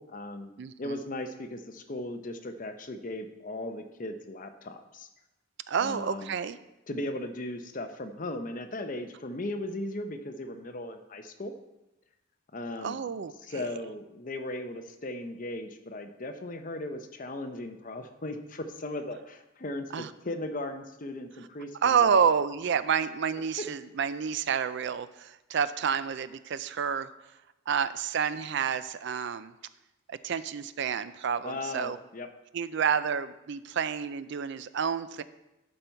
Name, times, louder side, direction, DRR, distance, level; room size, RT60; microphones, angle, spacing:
voice 1, 0.0-0.5 0.8-5.1 5.8-6.3 6.9-11.5 12.5-13.1 13.4-22.2 23.6-23.7 31.4-32.3, left 1 dB, 40° left, 7 dB, 0.7 m, -37 dB
voice 2, 0.6-1.0 5.7-6.6 12.8-13.6 19.9-20.1 21.8-27.1 27.7-29.5 30.1-32.0 32.5-35.2, right 7 dB, 55° right, 14 dB, 0.4 m, -29 dB
12.0 x 5.4 x 4.5 m, 0.94 s
head